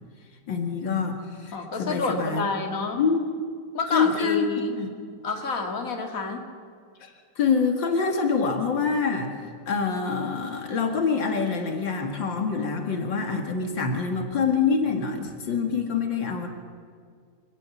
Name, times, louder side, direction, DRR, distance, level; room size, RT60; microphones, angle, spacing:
voice 1, 0.5-2.5 3.0-3.3 3.9-4.5 4.8-4.9 7.0-16.5, left 5 dB, 80° left, 4 dB, 2.7 m, -26 dB
voice 2, 1.5-3.0 3.7-4.8 5.2-6.4, left 4 dB, 45° left, 3 dB, 2.6 m, -28 dB
25.0 x 18.5 x 7.2 m, 2.2 s
omnidirectional pair, 2.0 m